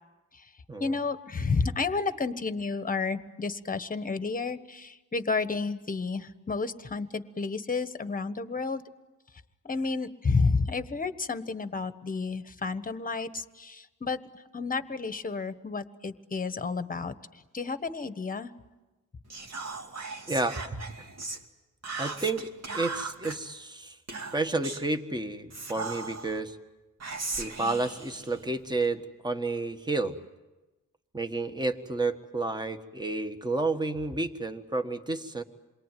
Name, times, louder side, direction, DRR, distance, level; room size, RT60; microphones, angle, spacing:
voice 1, 0.8-8.8 9.6-17.1 17.5-18.5, left 4 dB, 25° left, 11 dB, 1.3 m, -31 dB
Whispering, 19.3-21.4 21.8-23.4 24.1-24.9 25.5-26.4 27.0-28.9, right 3 dB, 50° right, 2.6 m, -38 dB
voice 2, 20.3-20.8 22.0-22.5 22.7-24.0 24.3-26.6 27.4-30.2 31.1-35.4, right 2 dB, 15° right, 7 dB, 1.6 m, -31 dB
28.0 x 22.5 x 9.3 m, 1.1 s
wide cardioid pair, 120°, 33 cm